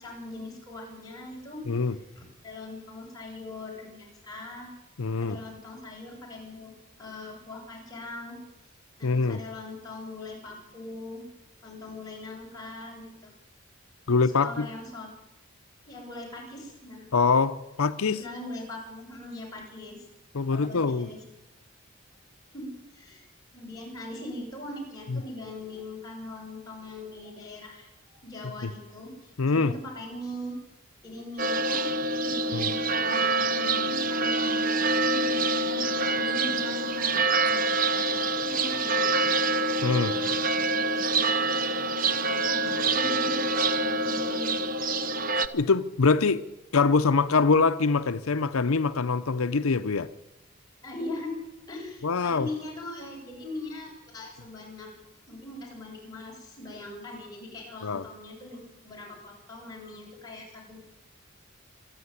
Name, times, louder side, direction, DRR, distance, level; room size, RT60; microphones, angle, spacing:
voice 1, 0.0-4.7 5.2-8.4 9.0-11.3 11.6-13.3 14.1-15.1 15.9-17.1 18.1-20.0 20.5-21.2 22.5-23.2 23.5-30.6 31.0-39.2 40.1-40.4 40.7-42.0 42.2-44.8 50.8-51.3 51.7-54.9 55.3-60.8, left 2 dB, 20° left, -3 dB, 7.5 m, -41 dB
voice 2, 5.0-5.4 9.0-9.4 14.1-14.7 17.1-18.2 20.3-21.1 25.1-25.2 28.6-28.7 29.4-29.7 32.5-32.7 39.8-40.1 45.5-46.4 46.7-50.1 52.0-52.5 57.8-58.0, left 4 dB, 85° left, 11 dB, 0.7 m, -24 dB
sound 1, 31.4-45.5, right 3 dB, 40° right, 0.8 m, -26 dB
26.0 x 10.5 x 9.8 m, 0.96 s
head